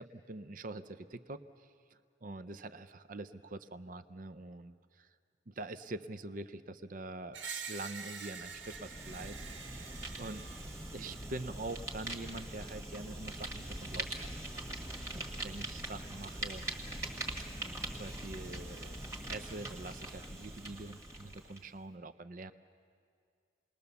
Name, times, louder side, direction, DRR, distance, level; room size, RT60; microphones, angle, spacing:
voice 1, 0.0-1.7 2.2-5.1 5.5-9.9 10.2-10.5 10.9-14.6 14.9-16.6 17.4-17.5 17.9-19.0 19.3-22.5, right 2 dB, 45° right, 12 dB, 0.6 m, -45 dB
Screech, 7.3-11.3, right 5 dB, 75° right, 1.4 m, -46 dB
Fire, 8.4-21.6, right 1 dB, 15° right, 1.5 m, -42 dB
28.0 x 20.0 x 7.0 m, 2.3 s
head